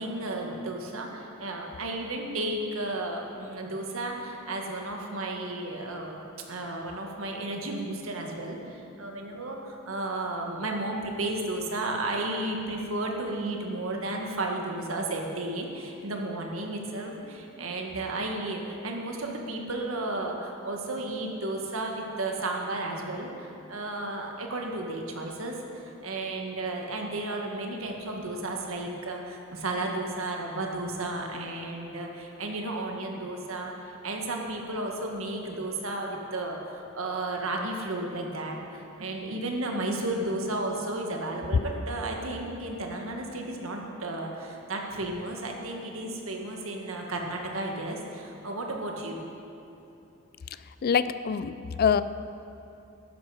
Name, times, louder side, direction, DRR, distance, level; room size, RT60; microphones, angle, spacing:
voice 1, 0.0-49.3, right 2 dB, 90° right, 1 dB, 1.5 m, -33 dB
voice 2, 50.8-52.0, left 7 dB, 50° left, 13 dB, 0.4 m, -25 dB
12.0 x 10.5 x 4.8 m, 2.9 s
head